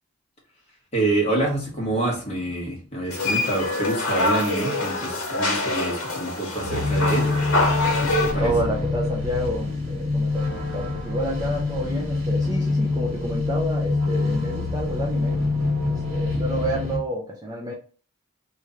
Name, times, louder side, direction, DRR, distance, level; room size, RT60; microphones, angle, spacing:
voice 1, 0.9-7.4 7.8-8.5, right 2 dB, 30° left, -2 dB, 1.4 m, -27 dB
sound 1, 1.5-2.7 6.6-17.0, left 3 dB, 70° right, 1.5 m, -25 dB
sound 2, 3.1-8.3, left 2 dB, 65° left, 1.5 m, -25 dB
voice 2, 8.4-15.4 15.9-17.7, equal, 15° right, -1 dB, 0.5 m, -29 dB
3.1 x 2.7 x 3.7 m, 0.39 s
head